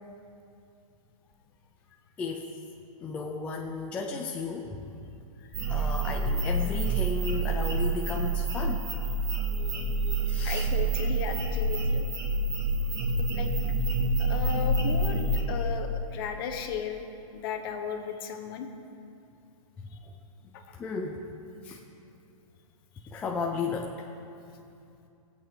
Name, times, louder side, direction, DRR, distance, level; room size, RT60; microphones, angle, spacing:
voice 1, 2.2-2.5 3.0-4.9 5.7-8.8 9.5-10.7 20.7-21.3 21.6-21.8 23.1-24.1, left 4 dB, 5° left, 0 dB, 0.3 m, -34 dB
voice 2, 5.4-5.9 10.4-12.1 13.3-13.5 14.0-17.0 17.3-18.7 19.9-20.0 20.5-20.8, left 7 dB, 40° left, 5 dB, 1.2 m, -36 dB
sound 1, 5.5-15.4, right 2 dB, 20° right, 1.2 m, -27 dB
18.5 x 8.2 x 5.4 m, 2.6 s
hypercardioid pair, 160°, 18 cm